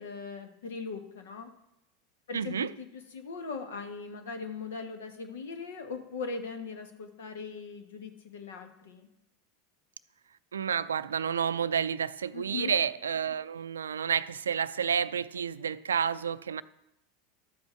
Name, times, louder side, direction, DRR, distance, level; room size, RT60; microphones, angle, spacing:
voice 1, 0.0-1.5 2.3-9.1 12.3-12.7, left 4 dB, 75° left, 1.4 m, -40 dB
voice 2, 2.3-2.7 10.5-16.6, right 7 dB, 80° right, 0.4 m, -30 dB
12.5 x 7.8 x 4.5 m
hypercardioid pair, 85°, 0 cm